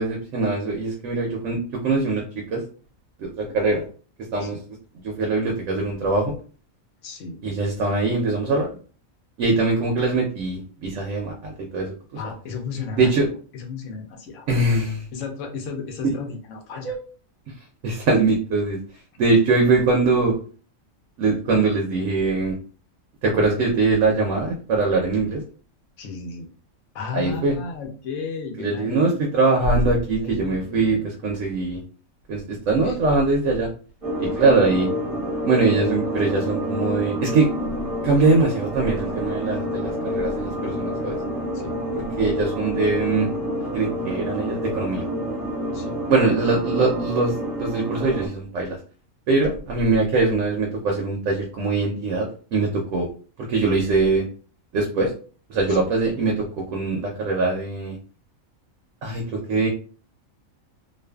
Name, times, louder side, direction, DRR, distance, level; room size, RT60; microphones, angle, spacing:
voice 1, 0.0-2.2 2.5-2.6 3.2-3.8 4.3-4.6 5.0-6.3 7.4-8.7 9.4-11.9 13.0-13.3 14.5-15.0 16.8-17.0 17.8-18.8 19.2-20.3 21.2-22.6 23.2-25.4 27.1-27.5 28.6-31.0 31.2-31.8 32.3-33.7 34.2-34.9 35.4-37.5 38.0-41.2 41.9-43.3 43.7-45.0 46.1-48.8 49.3-53.1 53.4-54.2 54.7-55.1 55.5-58.0 59.0-59.7, right 3 dB, 70° right, 1 dB, 0.9 m, -22 dB
voice 2, 3.4-3.7 4.4-4.6 7.0-7.4 12.1-14.5 15.1-16.9 26.0-26.5 26.9-29.2 30.1-31.1 32.8-33.0 41.5-41.8 45.7-46.0 55.7-55.9, left 5 dB, 65° left, 3 dB, 0.9 m, -34 dB
sound 1, 34.0-48.3, equal, 30° right, 0.8 m, -28 dB
2.5 x 2.4 x 2.2 m, 0.40 s
omnidirectional pair, 1.4 m